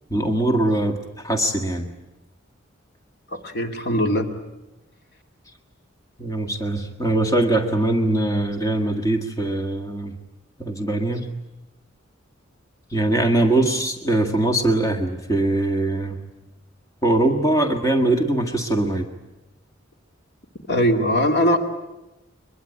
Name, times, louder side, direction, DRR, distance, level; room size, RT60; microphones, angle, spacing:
voice 1, 0.1-1.9 6.2-10.1 10.6-11.3 12.9-16.2 17.0-19.0, right 1 dB, 15° left, 4 dB, 1.8 m, -22 dB
voice 2, 3.3-4.3 20.7-21.6, equal, 60° left, 4 dB, 2.4 m, -20 dB
23.5 x 21.5 x 9.8 m, 1.0 s
head